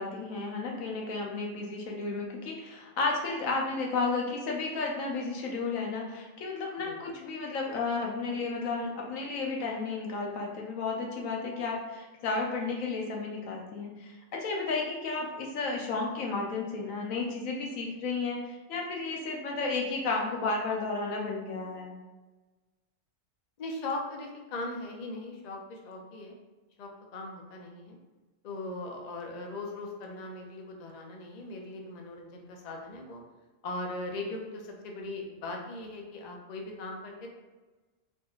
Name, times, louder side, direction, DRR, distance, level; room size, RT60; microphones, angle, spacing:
voice 1, 0.0-22.0, left 3 dB, 85° left, 0 dB, 1.1 m, -33 dB
voice 2, 6.8-7.2 23.6-26.3 26.8-28.0 28.4-33.2 33.6-37.3, left 2 dB, 50° left, 1 dB, 0.5 m, -39 dB
4.4 x 3.0 x 2.4 m, 1.2 s
omnidirectional pair, 1.3 m